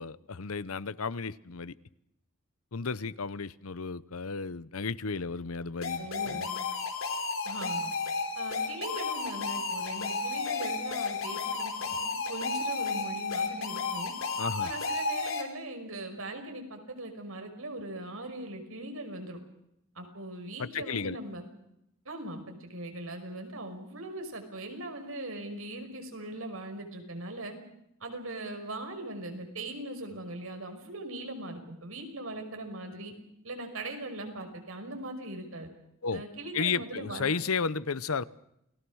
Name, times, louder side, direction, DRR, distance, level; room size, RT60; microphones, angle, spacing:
voice 1, 0.0-1.7 2.7-6.4 14.4-14.7 20.6-21.2 36.0-36.2 36.5-38.2, left 5 dB, 90° left, 0.9 m, -33 dB
sound 1, 5.8-15.4, left 4 dB, 70° left, 3.5 m, -32 dB
voice 2, 6.0-6.6 7.4-7.9 8.4-14.1 14.6-19.4 20.0-21.5 22.1-27.6 28.0-33.1 33.4-35.7 36.1-37.3, right 1 dB, 75° right, 5.6 m, -40 dB
29.0 x 20.0 x 6.3 m
head